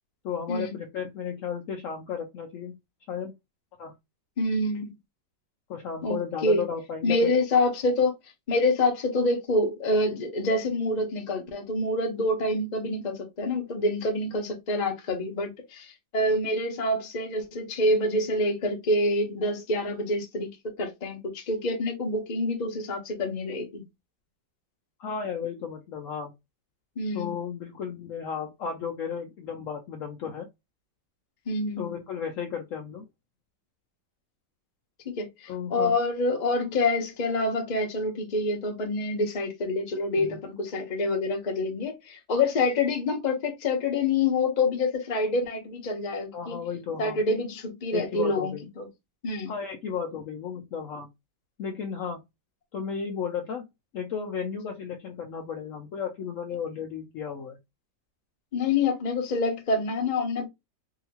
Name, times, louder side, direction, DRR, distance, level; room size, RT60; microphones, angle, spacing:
voice 1, 0.2-2.8 3.1-3.3 3.8-3.9 5.7-7.3 25.0-26.3 27.1-30.5 31.8-33.1 35.5-36.0 40.2-40.4 46.3-47.2 47.9-48.6 49.5-51.1 51.6-52.2 52.7-53.6 53.9-57.6, left 7 dB, 85° left, 0.7 m, -34 dB
voice 2, 4.4-4.9 6.0-6.6 7.0-8.1 8.5-20.5 20.8-23.8 27.0-27.3 31.5-31.9 35.2-46.6 47.0-48.9 49.2-49.5 58.5-60.5, left 2 dB, 45° left, 0.5 m, -27 dB
2.8 x 2.8 x 2.7 m
omnidirectional pair, 2.0 m